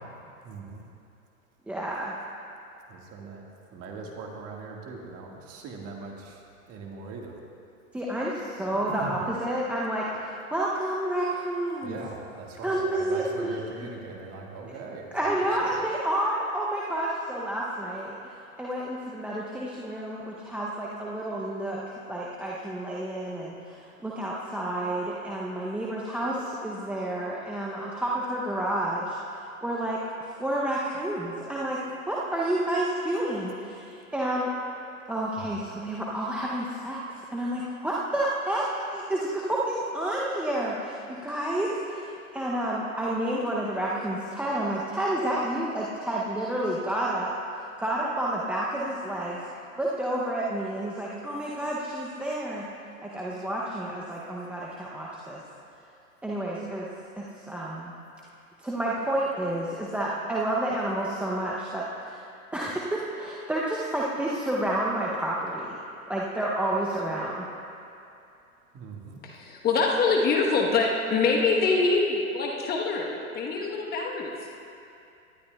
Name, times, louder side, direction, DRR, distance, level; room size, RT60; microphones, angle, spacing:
voice 1, 0.4-0.8 2.9-3.4 3.7-6.4 6.7-7.4 8.9-9.2 10.1-10.2 11.8-15.8 35.4-35.5 68.7-69.2, right 4 dB, 35° right, 0 dB, 1.7 m, -40 dB
voice 2, 1.7-2.1 7.9-12.0 12.6-13.9 15.1-21.8 22.1-29.2 29.6-31.8 32.1-34.5 35.1-37.0 37.3-47.3 47.8-49.4 49.8-52.7 53.0-55.4 56.2-56.9 57.2-58.0 58.6-62.2 62.5-65.8 66.1-67.5, right 1 dB, 5° right, -5 dB, 0.5 m, -30 dB
voice 3, 69.2-74.3, left 4 dB, 20° left, -1 dB, 1.1 m, -24 dB
18.5 x 12.0 x 2.3 m, 2.6 s
hypercardioid pair, 110°, 43 cm